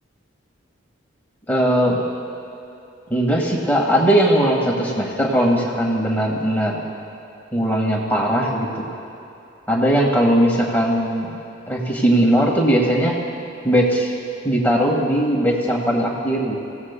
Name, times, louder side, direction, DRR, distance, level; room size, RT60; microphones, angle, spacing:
voice 1, 1.5-2.0 3.1-6.8 7.5-8.9 9.7-11.3 11.7-13.2 13.6-14.1 14.4-16.6, equal, 10° left, -3 dB, 1.7 m, -19 dB
27.5 x 16.5 x 2.2 m, 2.7 s
head